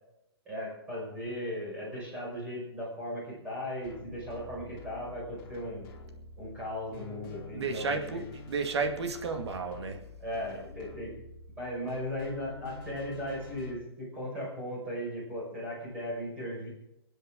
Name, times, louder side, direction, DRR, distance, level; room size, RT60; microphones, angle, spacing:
voice 1, 0.5-5.9 6.4-8.2 10.2-11.1 11.6-16.7, equal, 10° right, -5 dB, 5.8 m, -37 dB
sound 1, 3.8-13.7, left 3 dB, 20° left, 2.7 m, -47 dB
voice 2, 7.5-10.0, right 4 dB, 90° right, 4 dB, 2.1 m, -32 dB
27.5 x 9.8 x 3.8 m, 0.85 s
hypercardioid pair, 175°, 14 cm